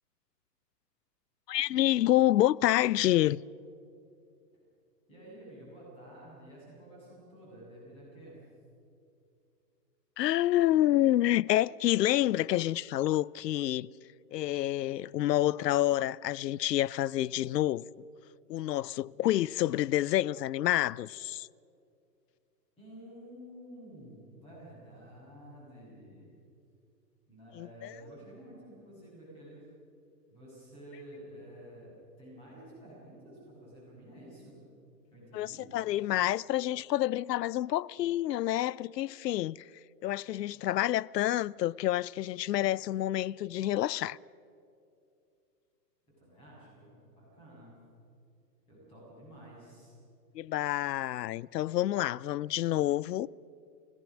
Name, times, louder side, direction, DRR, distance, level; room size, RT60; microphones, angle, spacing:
voice 1, 1.5-3.4 10.2-13.9 14.3-17.9 18.5-21.5 27.6-27.9 35.3-39.7 40.0-44.2 50.3-53.3, left 14 dB, 75° left, 0.6 m, -28 dB
voice 2, 5.1-8.4 22.8-26.4 27.3-29.6 30.3-34.6 35.1-35.7 46.2-47.7 48.7-49.9, right 1 dB, 10° left, 7.6 m, -51 dB
27.0 x 17.5 x 6.3 m
hypercardioid pair, 175°, 49 cm